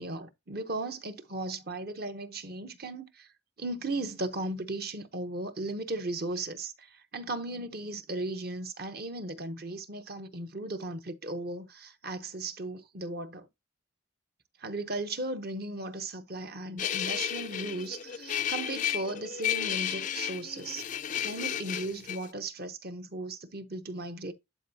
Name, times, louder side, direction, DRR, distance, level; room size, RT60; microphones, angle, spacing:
voice 1, 0.0-3.3 3.6-13.5 14.6-20.8 21.2-24.3, right 2 dB, 50° right, 0.9 m, -36 dB
sound 1, 16.8-22.3, left 10 dB, 40° left, 0.4 m, -33 dB
11.0 x 4.5 x 2.8 m
head